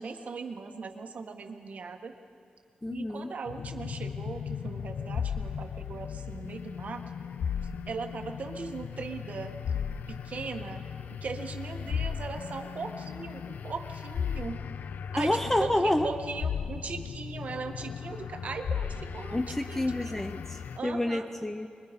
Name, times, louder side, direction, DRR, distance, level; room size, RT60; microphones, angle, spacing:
voice 1, 0.0-2.1 2.9-7.0 7.9-10.8 11.2-14.6 15.1-20.1 20.8-21.3, right 4 dB, 60° right, 5 dB, 1.5 m, -39 dB
voice 2, 2.8-3.3 15.2-16.1 19.3-21.7, left 1 dB, 10° left, 7 dB, 0.6 m, -29 dB
sound 1, 3.5-20.8, left 7 dB, 85° left, 0.5 m, -36 dB
25.5 x 22.0 x 5.2 m, 2.4 s
wide cardioid pair, 150°, 3 cm